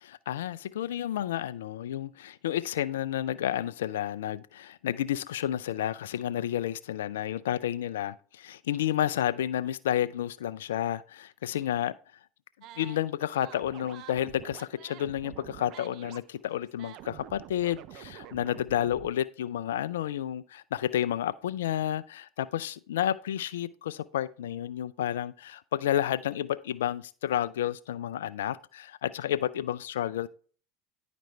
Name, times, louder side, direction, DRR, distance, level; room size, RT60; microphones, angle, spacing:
voice 1, 0.0-11.9 12.8-30.3, left 11 dB, 80° left, 0.4 m, -31 dB
sound 1, 12.6-13.0 13.3-19.1, right 12 dB, 55° right, 0.5 m, -47 dB
10.5 x 5.1 x 3.3 m
hypercardioid pair, 80°, 0 cm